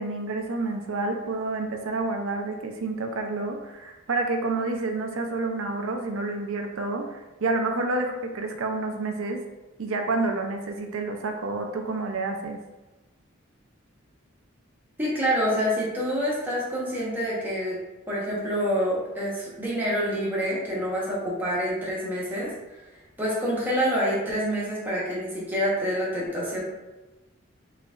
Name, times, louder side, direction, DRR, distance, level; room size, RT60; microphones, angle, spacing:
voice 1, 0.0-9.4 9.8-12.6, right 3 dB, 80° right, 4 dB, 0.5 m, -29 dB
voice 2, 15.0-17.8 18.1-22.5 23.2-26.6, equal, 10° right, -7 dB, 0.9 m, -27 dB
3.9 x 3.2 x 2.4 m, 1.1 s
head